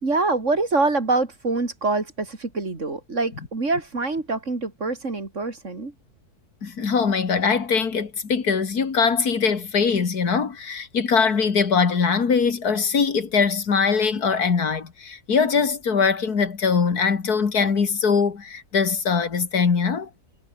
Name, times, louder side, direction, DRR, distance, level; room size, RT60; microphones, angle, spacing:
voice 1, 0.0-5.9, right 3 dB, 50° right, 3.5 m, -25 dB
voice 2, 6.6-20.1, left 5 dB, 80° left, 2.6 m, -22 dB
omnidirectional pair, 1.6 m